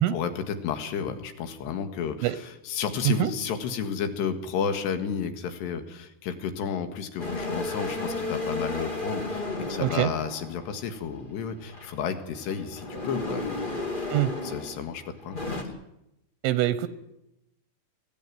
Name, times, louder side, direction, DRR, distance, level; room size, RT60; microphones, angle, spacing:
voice 1, 0.1-14.1 14.4-15.8, left 7 dB, 70° left, 8 dB, 3.6 m, -32 dB
sound 1, 7.2-11.0 11.6-14.9 15.2-15.6, left 2 dB, 30° left, 0.9 m, -34 dB
voice 2, 9.8-10.1 14.1-14.3 16.4-16.9, right 13 dB, 90° right, 13 dB, 3.4 m, -24 dB
22.5 x 16.5 x 9.4 m, 0.86 s
omnidirectional pair, 5.4 m